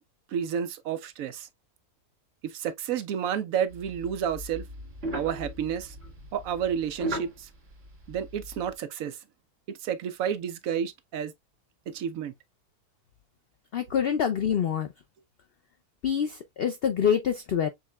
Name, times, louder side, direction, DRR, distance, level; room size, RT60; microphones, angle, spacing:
voice 1, 0.3-1.5 2.4-4.6 5.1-5.9 6.3-7.5 8.1-9.2 9.8-11.3 11.9-12.3, right 8 dB, 70° right, 0.9 m, -30 dB
sound 1, 3.7-8.7, right 1 dB, 40° right, 2.0 m, -38 dB
voice 2, 13.7-14.9 16.0-17.7, left 8 dB, 75° left, 0.5 m, -26 dB
6.5 x 3.1 x 2.2 m
omnidirectional pair, 1.6 m